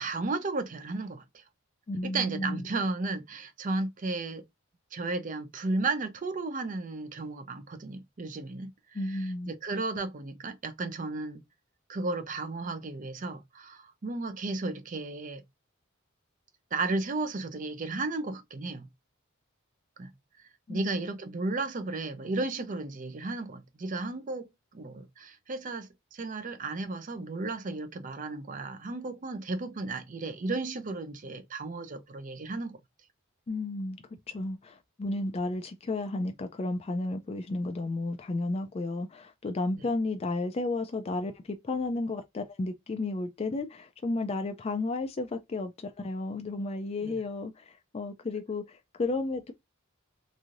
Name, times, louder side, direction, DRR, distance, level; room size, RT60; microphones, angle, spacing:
voice 1, 0.0-1.4 2.0-4.4 4.9-8.7 9.1-11.4 11.9-15.4 16.7-18.9 20.0-20.1 20.7-32.8 47.0-47.1, right 3 dB, 40° right, 0.5 m, -34 dB
voice 2, 1.9-2.7 8.9-9.5 20.7-21.0 33.5-49.5, left 2 dB, 30° left, 0.4 m, -33 dB
3.1 x 2.6 x 2.5 m
head